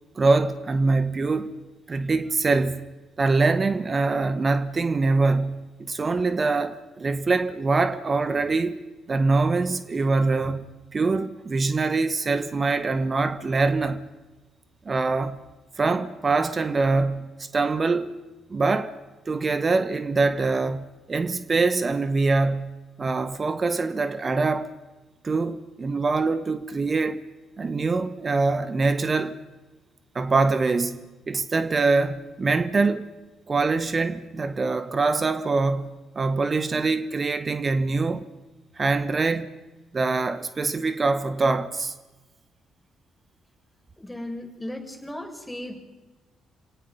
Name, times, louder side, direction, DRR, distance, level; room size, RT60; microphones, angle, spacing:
voice 1, 0.1-1.5 1.9-2.9 3.2-8.7 9.1-10.7 10.9-14.1 14.8-15.4 15.8-18.1 18.5-18.9 19.3-24.7 25.2-27.2 27.6-29.4 30.1-31.0 31.3-33.1 33.5-38.3 38.8-39.5 39.9-41.9, right 3 dB, 35° right, 1.4 m, -24 dB
voice 2, 44.0-45.7, left 1 dB, 5° left, 6.7 m, -36 dB
29.5 x 18.0 x 5.5 m
figure-of-eight pair, 45°, 0 cm